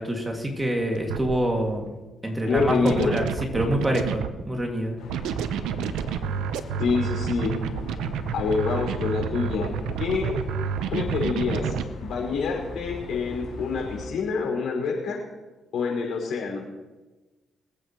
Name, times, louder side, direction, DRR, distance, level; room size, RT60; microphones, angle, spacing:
voice 1, 0.0-1.9 2.2-3.2 3.5-5.0, right 1 dB, 15° right, 1 dB, 2.2 m, -26 dB
sound 1, 0.9-1.4 2.6-4.4 5.1-11.8, right 7 dB, 90° right, 0.8 m, -29 dB
voice 2, 2.4-3.1 6.8-7.5 8.0-9.7 10.0-10.3 10.9-11.7 12.0-15.2 15.7-16.7, left 5 dB, 70° left, -1 dB, 5.2 m, -26 dB
sound 2, 5.0-14.1, left 4 dB, 85° left, 4.5 m, -40 dB
24.5 x 8.6 x 3.1 m, 1.2 s
cardioid pair, 90°, 0 cm